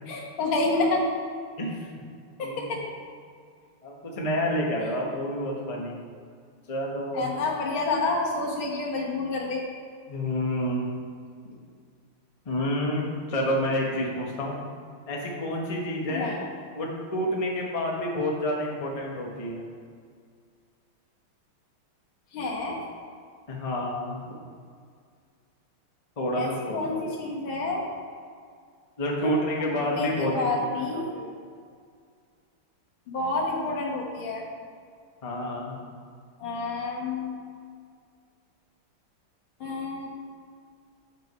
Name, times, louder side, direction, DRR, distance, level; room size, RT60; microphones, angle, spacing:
voice 1, 0.1-1.1 2.4-2.8 7.1-9.7 16.1-16.4 22.3-22.8 26.4-27.9 29.2-29.3 29.6-31.1 33.1-34.4 36.4-37.4 39.6-40.1, left 2 dB, 70° left, -2 dB, 2.0 m, -29 dB
voice 2, 3.8-5.9 6.7-7.3 10.1-10.9 12.4-14.6 15.1-16.4 16.7-19.6 23.5-24.2 26.2-27.0 29.0-31.3 35.2-35.8, equal, 25° left, -2 dB, 0.7 m, -29 dB
7.5 x 4.8 x 5.5 m, 2.1 s
omnidirectional pair, 2.4 m